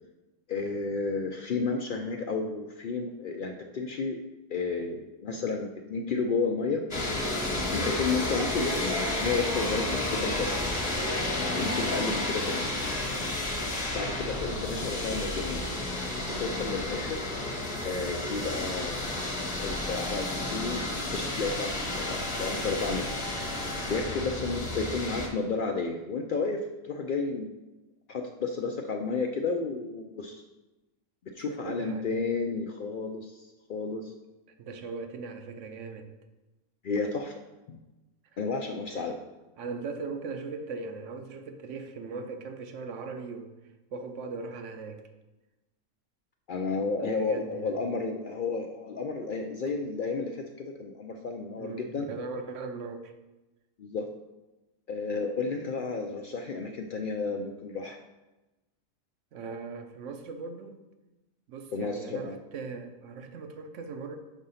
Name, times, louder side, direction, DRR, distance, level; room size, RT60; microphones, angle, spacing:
voice 1, 0.5-4.2 4.5-6.9 7.7-10.6 11.5-12.7 13.9-15.6 16.4-17.2 17.8-19.0 19.6-23.2 23.9-27.5 28.1-30.4 31.3-34.1 36.8-37.3 37.7-37.8 38.4-39.2 46.5-50.4 50.8-52.1 53.8-54.1 54.9-58.0 61.7-62.4, left 4 dB, 60° left, 3 dB, 0.5 m, -32 dB
sound 1, 6.9-25.3, left 2 dB, 30° left, 1.3 m, -31 dB
voice 2, 31.4-32.1 34.6-36.1 38.9-39.1 39.6-43.5 43.9-45.1 47.0-47.8 51.6-53.1 59.3-60.8 61.5-64.2, right 4 dB, 70° right, 7 dB, 1.0 m, -39 dB
6.2 x 3.8 x 5.6 m, 1.1 s
omnidirectional pair, 1.4 m